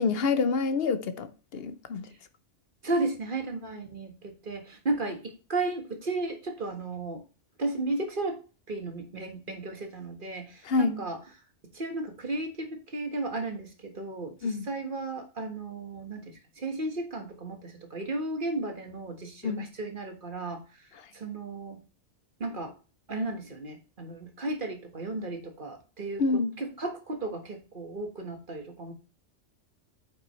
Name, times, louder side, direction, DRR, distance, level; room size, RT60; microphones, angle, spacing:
voice 1, 0.0-2.1 10.6-11.0 14.4-14.7 19.4-19.7 26.2-26.5, left 4 dB, 60° left, 0.9 m, -27 dB
voice 2, 2.8-7.2 7.6-8.4 8.7-11.2 11.7-20.6 21.1-21.8 22.4-22.7 23.1-28.9, right 2 dB, 45° right, 1.7 m, -34 dB
8.6 x 5.4 x 3.1 m
omnidirectional pair, 1.2 m